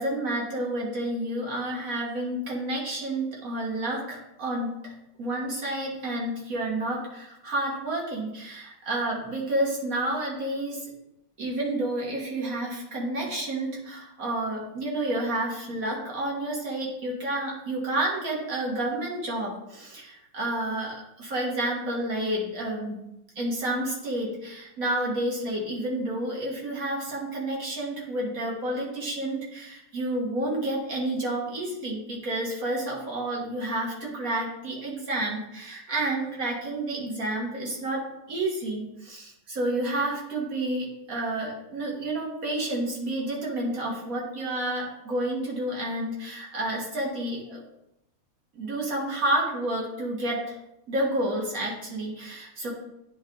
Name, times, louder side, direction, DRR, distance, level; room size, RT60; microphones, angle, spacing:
voice 1, 0.0-4.9 5.2-10.9 11.4-23.0 23.4-47.6 48.5-50.6 50.9-52.7, right 1 dB, 45° right, -3 dB, 1.9 m, -30 dB
9.7 x 3.3 x 3.8 m, 0.87 s
omnidirectional pair, 2.3 m